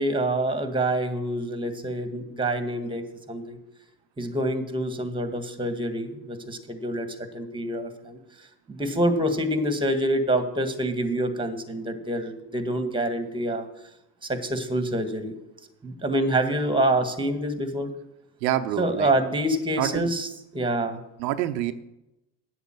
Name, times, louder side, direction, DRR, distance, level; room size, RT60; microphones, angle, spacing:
voice 1, 0.0-3.6 4.2-8.2 8.7-13.7 14.2-15.3 15.8-17.9 18.8-21.0, right 1 dB, 10° right, 8 dB, 1.8 m, -26 dB
voice 2, 18.4-19.1 19.8-20.1 21.2-21.7, right 13 dB, 85° right, 9 dB, 0.8 m, -26 dB
8.4 x 8.1 x 7.7 m, 0.91 s
hypercardioid pair, 85°, 49 cm